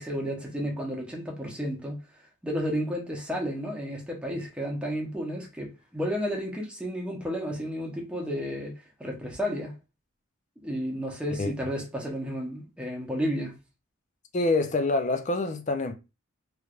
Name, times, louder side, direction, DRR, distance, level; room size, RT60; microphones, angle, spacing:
voice 1, 0.0-2.0 2.4-9.8 10.6-13.5, equal, 5° right, 0.8 m, -32 dB
voice 2, 14.3-16.0, left 2 dB, 35° left, 0.4 m, -26 dB
3.2 x 3.1 x 2.4 m
head